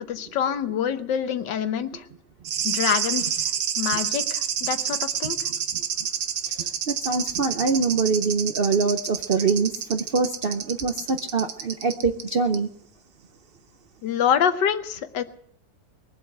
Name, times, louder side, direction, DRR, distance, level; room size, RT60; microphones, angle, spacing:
voice 1, 0.0-2.0 2.6-3.4 3.8-5.4 14.0-15.2, left 8 dB, 80° left, 10 dB, 1.6 m, -26 dB
sound 1, 2.4-12.2 12.5-12.6, right 9 dB, 90° right, 1.6 m, -29 dB
voice 2, 6.6-12.7, right 4 dB, 55° right, 6 dB, 0.6 m, -24 dB
21.5 x 7.9 x 7.9 m, 0.70 s
omnidirectional pair, 1.9 m